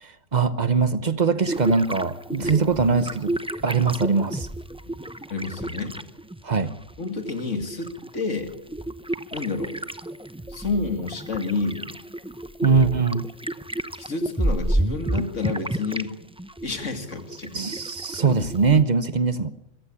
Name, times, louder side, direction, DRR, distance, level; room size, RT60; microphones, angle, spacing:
voice 1, 0.0-3.4 3.6-4.5 6.4-6.7 12.6-13.3 17.5-19.5, right 5 dB, 35° right, 0.9 m, -22 dB
sound 1, 1.4-6.4 6.7-16.1 16.4-18.8, right 1 dB, 10° right, 0.3 m, -31 dB
voice 2, 5.3-6.0 7.0-8.5 9.3-9.7 10.5-11.9 12.6-12.8 14.0-16.1 16.6-17.5 18.7-18.8, left 3 dB, 60° left, 2.7 m, -29 dB
24.0 x 15.5 x 8.5 m
omnidirectional pair, 1.4 m